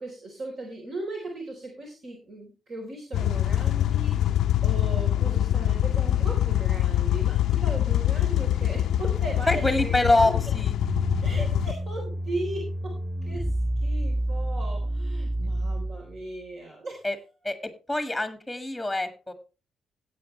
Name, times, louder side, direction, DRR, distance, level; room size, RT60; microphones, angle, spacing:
voice 1, 0.0-10.4 11.2-12.9 13.2-13.5 13.8-17.1, right 2 dB, 50° right, 0 dB, 3.8 m, -37 dB
sound 1, 3.1-11.7, left 12 dB, 75° left, 0.5 m, -24 dB
voice 2, 9.5-10.7 17.0-17.2 17.4-17.6 17.9-19.3, left 2 dB, ahead, 8 dB, 1.7 m, -24 dB
sound 2, 10.8-16.2, right 1 dB, 20° right, 1.7 m, -29 dB
17.0 x 8.0 x 3.2 m, 0.32 s
cardioid pair, 145°, 0 cm